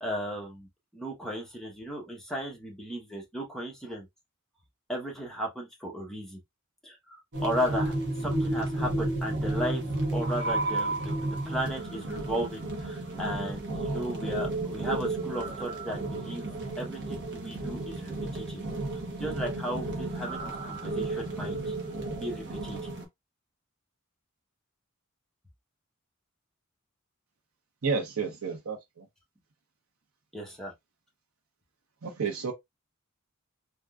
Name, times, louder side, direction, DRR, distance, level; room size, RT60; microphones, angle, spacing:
voice 1, 0.0-4.1 4.9-6.4 6.8-8.0 8.2-9.8 10.1-16.5 16.8-18.6 19.2-21.7 22.2-22.8 30.3-30.7, equal, ahead, 1.0 m, -35 dB
sound 1, 7.3-23.1, right 2 dB, 55° right, 0.8 m, -32 dB
voice 2, 27.8-29.0 32.0-32.5, right 5 dB, 90° right, 0.7 m, -31 dB
3.6 x 2.3 x 2.3 m
head